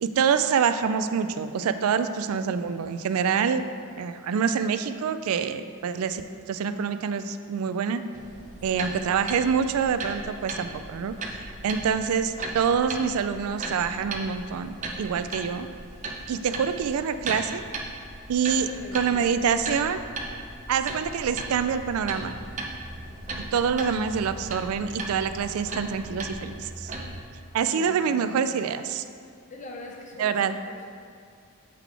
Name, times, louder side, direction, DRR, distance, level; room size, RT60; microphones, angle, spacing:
voice 1, 0.0-3.6 4.0-6.2 6.5-8.0 8.6-11.1 11.6-15.7 16.3-17.6 18.3-18.7 18.9-20.0 20.7-22.3 23.5-26.9 27.5-29.0 30.2-30.5, right 6 dB, 80° right, 11 dB, 0.3 m, -26 dB
sound 1, 8.1-27.2, right 2 dB, 35° right, 0.6 m, -37 dB
voice 2, 8.7-9.0 18.6-19.4 23.1-23.5 27.4-28.6 29.5-30.9, left 1 dB, 35° left, 1 dB, 0.7 m, -44 dB
7.4 x 4.0 x 4.5 m, 2.3 s
head